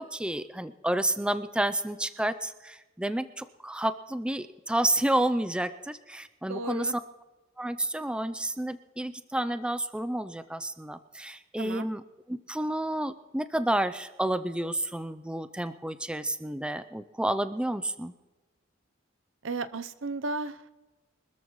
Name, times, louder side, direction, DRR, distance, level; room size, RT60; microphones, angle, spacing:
voice 1, 0.0-6.9 7.6-12.0 12.3-18.1, right 1 dB, 5° right, 12 dB, 0.5 m, -30 dB
voice 2, 6.5-6.9 11.6-11.9 19.4-20.7, right 3 dB, 70° right, 13 dB, 0.7 m, -34 dB
24.5 x 13.5 x 3.1 m, 1.1 s
head